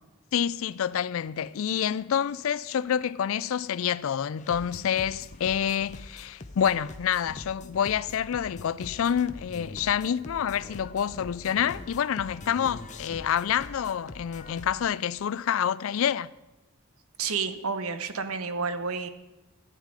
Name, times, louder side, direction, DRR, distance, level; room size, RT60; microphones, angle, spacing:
voice 1, 0.3-16.3, left 8 dB, 65° left, 0.4 m, -28 dB
sound 1, 4.4-14.8, left 2 dB, 35° left, 0.7 m, -44 dB
voice 2, 17.2-19.1, right 5 dB, 75° right, 0.9 m, -30 dB
14.0 x 9.2 x 5.0 m
head